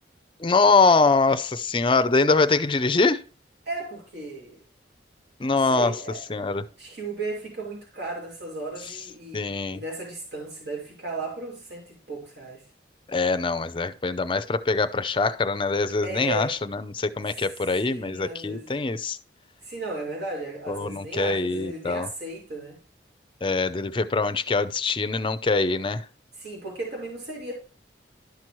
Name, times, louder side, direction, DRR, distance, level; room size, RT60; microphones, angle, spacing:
voice 1, 0.4-3.2 5.4-5.9 6.3-6.6 9.3-9.8 13.1-19.2 20.7-22.1 23.4-26.1, left 3 dB, 30° left, 0.5 m, -23 dB
voice 2, 3.7-4.6 5.5-6.2 6.5-9.5 9.7-12.6 16.0-16.5 17.2-18.7 19.6-22.8 26.4-27.5, right 2 dB, 70° right, 2.5 m, -35 dB
12.0 x 6.0 x 3.1 m
head